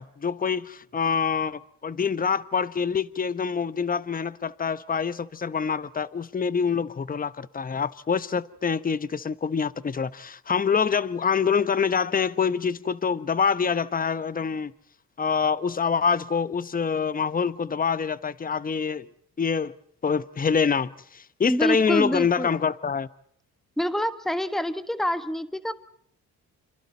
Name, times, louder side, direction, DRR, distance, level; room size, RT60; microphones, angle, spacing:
voice 1, 0.0-14.7 15.2-19.1 19.4-19.8 20.0-23.1, left 6 dB, 30° left, 1.0 m, -26 dB
voice 2, 21.5-22.5 23.8-25.7, equal, ahead, 1.4 m, -26 dB
29.0 x 27.5 x 4.1 m
cardioid pair, 90°, 30 cm